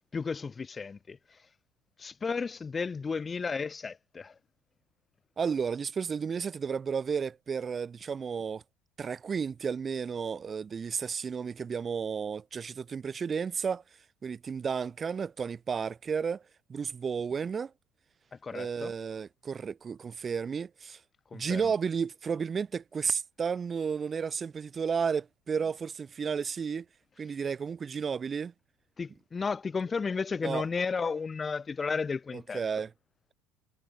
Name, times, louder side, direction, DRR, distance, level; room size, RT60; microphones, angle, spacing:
voice 1, 0.1-1.2 2.0-4.3 18.4-18.9 21.3-21.7 29.0-32.6, left 5 dB, 15° left, 2.5 m, -33 dB
voice 2, 5.4-8.6 9.0-13.8 14.2-16.4 16.7-17.7 18.5-21.0 21.3-26.9 27.2-28.5 30.4-30.6 32.3-32.9, right 6 dB, 20° right, 1.7 m, -32 dB
cardioid pair, 175°, 0 cm